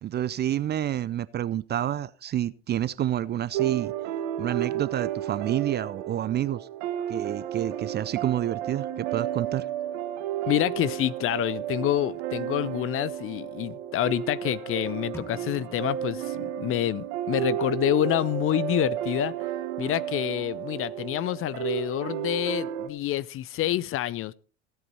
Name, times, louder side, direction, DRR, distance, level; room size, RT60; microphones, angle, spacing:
voice 1, 0.0-3.9 4.4-6.7 7.1-9.6, right 11 dB, 30° right, 0.5 m, -29 dB
sound 1, 3.5-22.9, right 11 dB, 65° right, 1.4 m, -32 dB
voice 2, 10.5-19.3 19.8-24.3, left 13 dB, 35° left, 0.5 m, -27 dB
sound 2, 15.1-17.0, left 2 dB, 5° left, 1.5 m, -47 dB
16.0 x 8.0 x 4.4 m
hypercardioid pair, 80°, 36 cm